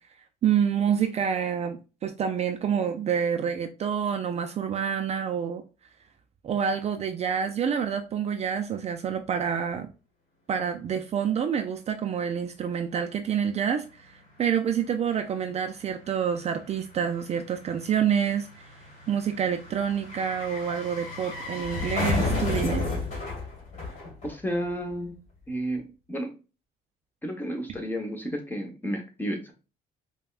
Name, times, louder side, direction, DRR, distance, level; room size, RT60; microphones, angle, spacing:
voice 1, 0.4-5.6 6.4-9.9 10.5-14.1 14.4-18.7 19.1-22.9, right 8 dB, 40° right, 6 dB, 0.4 m, -27 dB
sound 1, 14.0-14.1 14.3-24.7 25.0-25.1, left 3 dB, 45° left, 1.6 m, -33 dB
voice 2, 24.2-25.2 25.5-26.3 27.2-29.5, equal, 10° left, 3 dB, 0.9 m, -32 dB
5.1 x 2.2 x 2.3 m, 0.33 s
cardioid pair, 110°, 17 cm